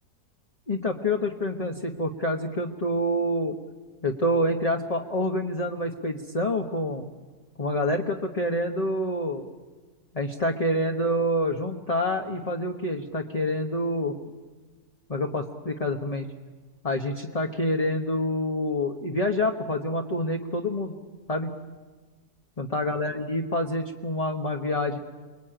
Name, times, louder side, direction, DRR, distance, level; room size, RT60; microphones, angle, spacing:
voice 1, 0.7-3.6 4.0-7.1 7.6-9.5 10.1-14.2 15.1-16.3 16.8-20.9 21.3-21.5 22.6-25.0, left 1 dB, 25° left, 1 dB, 1.3 m, -27 dB
29.5 x 22.0 x 9.0 m, 1.3 s
omnidirectional pair, 1.6 m